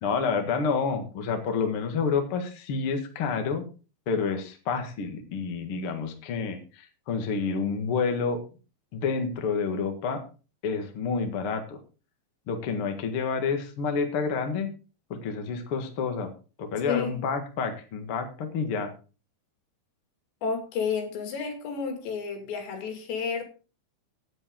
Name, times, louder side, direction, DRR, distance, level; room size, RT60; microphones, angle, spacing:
voice 1, 0.0-3.6 4.1-8.4 8.9-10.2 10.6-11.8 12.5-14.7 15.1-16.3 16.6-18.9, left 5 dB, 55° left, 5 dB, 1.5 m, -29 dB
voice 2, 16.9-17.2 20.4-23.4, left 6 dB, 75° left, 4 dB, 4.7 m, -31 dB
16.5 x 7.7 x 3.8 m, 0.34 s
omnidirectional pair, 5.1 m